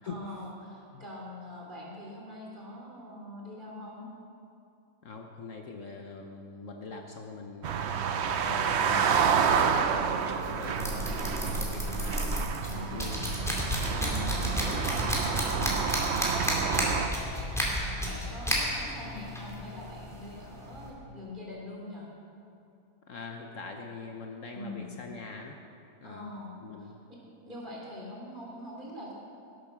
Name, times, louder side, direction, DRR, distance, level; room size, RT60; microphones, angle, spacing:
voice 1, 0.0-4.1 8.8-9.4 11.6-11.8 12.3-13.3 13.9-16.1 16.6-22.1 24.5-24.9 26.0-26.9 27.4-29.1, left 1 dB, 30° right, -4 dB, 3.5 m, -43 dB
voice 2, 5.0-7.9 8.4-12.2 12.9-13.2 23.1-25.6 26.0-26.3 26.6-26.9, left 4 dB, 60° left, 2 dB, 1.3 m, -43 dB
sound 1, 7.6-17.1, right 7 dB, 55° right, 0.8 m, -29 dB
sound 2, 8.3-20.9, equal, ahead, 2.5 m, -33 dB
18.0 x 8.6 x 6.1 m, 2.7 s
omnidirectional pair, 1.6 m